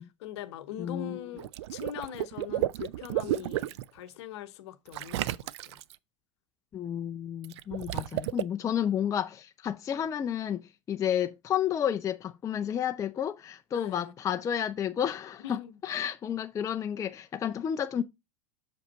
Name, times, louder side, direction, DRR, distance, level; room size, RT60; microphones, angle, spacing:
voice 1, 0.2-5.8 13.7-14.1 15.4-15.8, left 10 dB, 60° left, 0.8 m, -42 dB
voice 2, 0.8-1.2 6.7-10.6 10.9-18.0, left 9 dB, 20° left, 0.4 m, -31 dB
Water / Liquid, 1.4-3.9 4.9-6.0 7.4-8.4, right 15 dB, 60° right, 0.4 m, -32 dB
6.3 x 5.0 x 3.9 m
hypercardioid pair, 90°, 16 cm